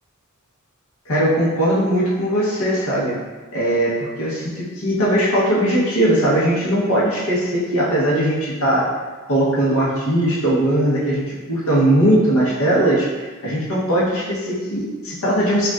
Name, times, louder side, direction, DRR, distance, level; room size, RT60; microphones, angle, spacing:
voice 1, 1.1-3.2 3.5-8.9 9.3-13.1 13.4-15.7, right 1 dB, 70° left, -6 dB, 1.0 m, -19 dB
4.8 x 2.4 x 2.4 m, 1.3 s
head